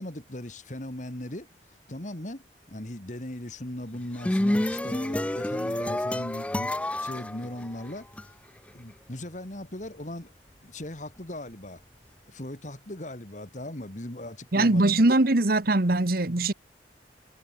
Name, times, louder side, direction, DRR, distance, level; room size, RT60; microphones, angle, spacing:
voice 1, 0.0-1.5 1.9-2.4 2.7-8.3 8.7-10.3 10.6-11.8 12.3-14.9, left 1 dB, 45° left, 2.3 m, -38 dB
sound 1, 3.9-8.2, left 1 dB, 5° left, 0.3 m, -29 dB
voice 2, 14.5-16.5, right 2 dB, 55° right, 1.4 m, -21 dB
head